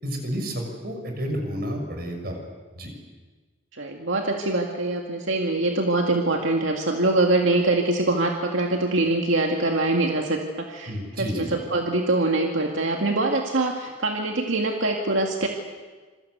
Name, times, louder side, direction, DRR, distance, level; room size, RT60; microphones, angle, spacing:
voice 1, 0.0-2.4 2.7-2.9 10.9-11.6, equal, 50° right, 3 dB, 6.5 m, -30 dB
voice 2, 3.7-15.5, right 2 dB, 80° right, 1 dB, 2.2 m, -24 dB
27.0 x 24.5 x 8.1 m, 1.4 s
head